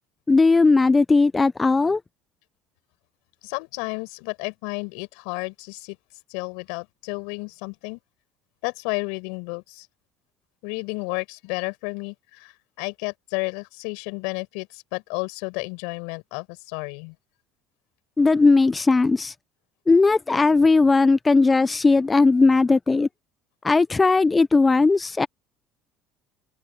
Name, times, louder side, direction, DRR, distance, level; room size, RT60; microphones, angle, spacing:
voice 1, 0.3-2.0 18.2-19.3 19.9-23.1 23.6-25.3, left 3 dB, 20° left, 0.4 m, -18 dB
voice 2, 3.4-6.0 6.3-8.0 8.6-9.9 10.6-17.1, left 34 dB, 80° left, 7.6 m, -32 dB
open air
supercardioid pair, 85°, 0 cm